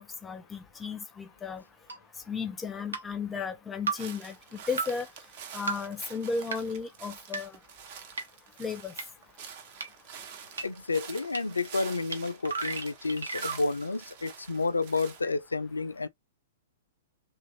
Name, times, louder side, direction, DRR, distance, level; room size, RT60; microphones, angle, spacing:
voice 1, 0.0-1.6 2.3-5.1 5.5-7.6 8.6-8.9, left 5 dB, 15° left, 0.6 m, -35 dB
sound 1, 1.9-2.0 2.9-3.0 3.9-4.0 4.8-4.9 5.7-5.8 6.5-6.6 7.3-7.4 8.2-8.3 9.0-9.1 9.8-9.9 10.6-10.7 11.3-11.4 12.1-12.2 12.4-13.6, right 4 dB, 75° right, 1.0 m, -32 dB
sound 2, 3.9-15.2, right 7 dB, 45° right, 0.9 m, -47 dB
voice 2, 10.6-16.1, left 3 dB, 80° left, 0.4 m, -30 dB
3.1 x 2.4 x 2.7 m
figure-of-eight pair, 110°, 0 cm